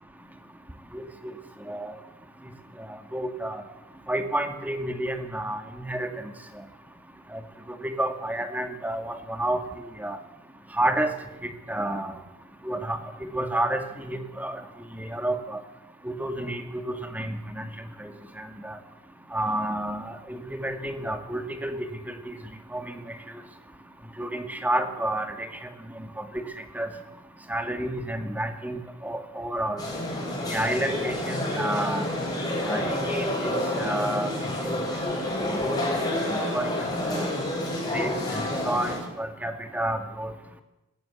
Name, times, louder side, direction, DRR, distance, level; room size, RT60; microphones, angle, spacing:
voice 1, 2.9-3.6 4.1-6.3 7.3-7.4 7.8-9.6 10.0-10.2 10.7-11.1 11.7-12.1 12.6-14.6 14.9-15.6 16.0-17.7 18.0-18.8 19.3-21.7 22.1-22.4 22.7-23.0 24.2-25.7 26.0-26.4 26.7-26.9 27.5-29.8 30.5-32.1 32.7-33.5 33.8-34.3 34.6-35.2 35.4-35.8 36.3-37.3 37.9-40.3, right 1 dB, 10° right, 7 dB, 2.1 m, -30 dB
sound 1, 29.8-39.0, left 1 dB, 20° left, 6.8 m, -29 dB
19.0 x 18.0 x 8.4 m, 0.97 s
head